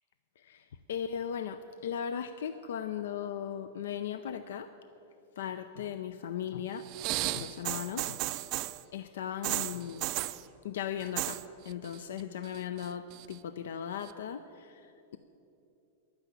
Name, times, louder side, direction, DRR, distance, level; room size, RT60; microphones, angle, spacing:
voice 1, 0.4-4.7 5.4-6.9 7.2-8.2 8.9-10.1 10.6-15.2, left 8 dB, 80° left, 11 dB, 0.5 m, -37 dB
sound 1, 6.9-8.8 9.4-10.4 11.0-11.4 11.7-12.2 12.5-13.3 14.1-14.2, right 18 dB, 40° right, 0.4 m, -34 dB
11.5 x 9.7 x 8.3 m, 2.8 s
supercardioid pair, 150°, 0 cm